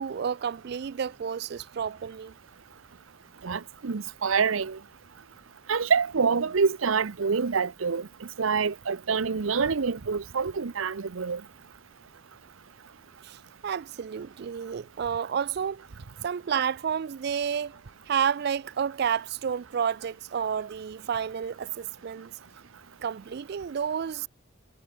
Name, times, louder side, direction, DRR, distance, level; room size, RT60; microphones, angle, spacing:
voice 1, 0.0-2.3 13.2-13.4 13.6-15.9 16.2-17.8 18.1-22.3 23.0-24.3, right 7 dB, 55° right, 0.3 m, -30 dB
voice 2, 3.4-4.8 5.7-8.1 8.4-11.4, right 5 dB, 85° right, 0.7 m, -26 dB
head